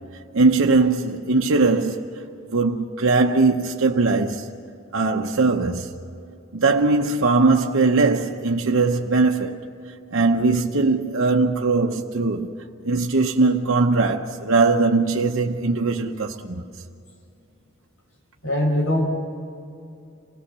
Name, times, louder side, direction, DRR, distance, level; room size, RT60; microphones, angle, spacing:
voice 1, 0.3-2.1 2.5-4.5 4.9-5.9 6.5-9.7 10.1-12.5 12.8-16.6, right 3 dB, 85° right, 0.9 m, -20 dB
voice 2, 18.4-19.0, left 1 dB, 75° left, 5.2 m, -21 dB
27.0 x 17.5 x 6.8 m
head